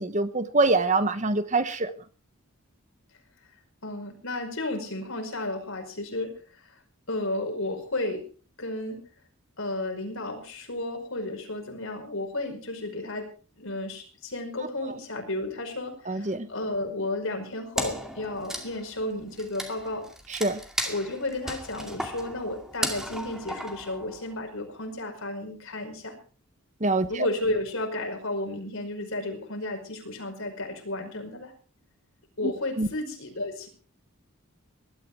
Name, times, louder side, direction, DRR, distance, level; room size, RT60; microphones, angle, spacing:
voice 1, 0.0-1.9 16.1-16.5 20.3-20.6 26.8-27.3 32.8-32.9, right 3 dB, 35° right, 11 dB, 1.2 m, -24 dB
voice 2, 3.8-6.8 7.1-8.3 8.6-9.0 9.6-13.3 13.6-20.1 20.8-26.1 27.1-31.5 32.4-33.7, left 2 dB, 65° left, 4 dB, 5.2 m, -33 dB
Wood, 17.8-24.5, equal, ahead, 2.2 m, -35 dB
20.0 x 13.0 x 4.6 m, 0.38 s
head